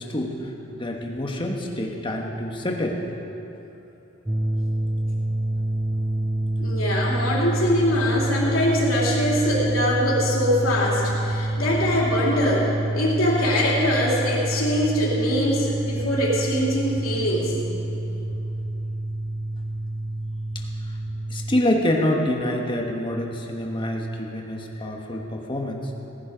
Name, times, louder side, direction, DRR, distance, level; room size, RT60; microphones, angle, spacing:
voice 1, 0.0-3.0 21.3-25.9, left 1 dB, 25° left, 1 dB, 1.4 m, -26 dB
sound 1, 4.3-21.6, right 1 dB, 10° right, 0.4 m, -27 dB
voice 2, 6.6-17.6, equal, 85° left, -4 dB, 3.2 m, -23 dB
18.0 x 10.5 x 5.1 m, 3.0 s
head